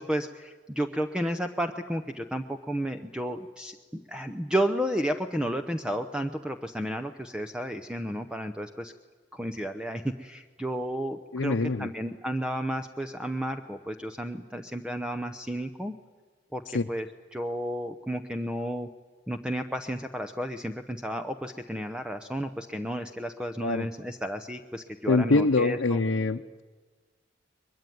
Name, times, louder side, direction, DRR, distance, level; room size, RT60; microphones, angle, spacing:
voice 1, 0.0-8.9 9.3-16.0 16.5-18.9 19.3-26.0, equal, 5° right, 7 dB, 0.8 m, -32 dB
voice 2, 11.3-11.9 16.7-16.9 23.6-23.9 25.1-26.6, left 3 dB, 85° left, 3 dB, 0.8 m, -24 dB
22.5 x 22.0 x 9.3 m, 1.4 s
head